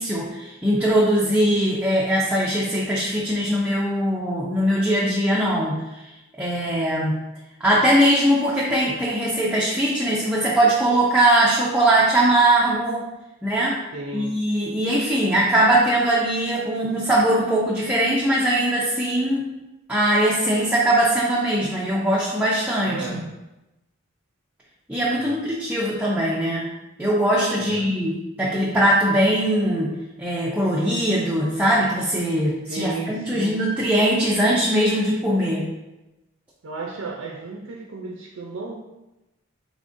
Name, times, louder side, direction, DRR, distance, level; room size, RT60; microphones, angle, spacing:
voice 1, 0.0-5.8 6.4-7.1 7.6-13.0 13.4-13.8 14.1-19.4 19.9-23.2 24.9-26.7 27.0-29.9 30.2-35.6, right 1 dB, 5° right, -6 dB, 0.4 m, -21 dB
voice 2, 13.9-14.3 22.9-23.2 25.2-25.4 27.6-27.9 32.7-33.6 36.6-38.7, right 3 dB, 65° right, -1 dB, 0.5 m, -33 dB
3.6 x 3.4 x 2.5 m, 1.0 s
head